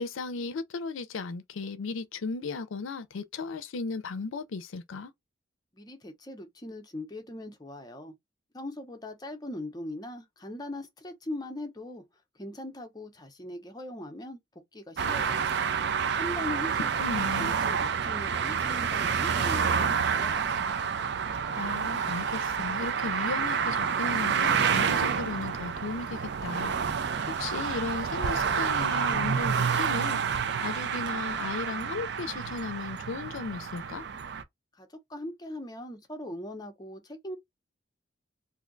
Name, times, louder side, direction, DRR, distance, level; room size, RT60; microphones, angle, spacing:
voice 1, 0.0-5.1 17.0-17.5 21.6-26.7 27.3-30.2 30.6-34.0, left 4 dB, 80° left, 0.5 m, -36 dB
voice 2, 5.7-8.1 8.5-12.0 12.3-15.6 16.2-20.8 34.7-37.4, left 1 dB, 20° left, 0.6 m, -40 dB
sound 1, 15.0-34.4, right 6 dB, 55° right, 0.4 m, -28 dB
2.6 x 2.2 x 3.7 m
head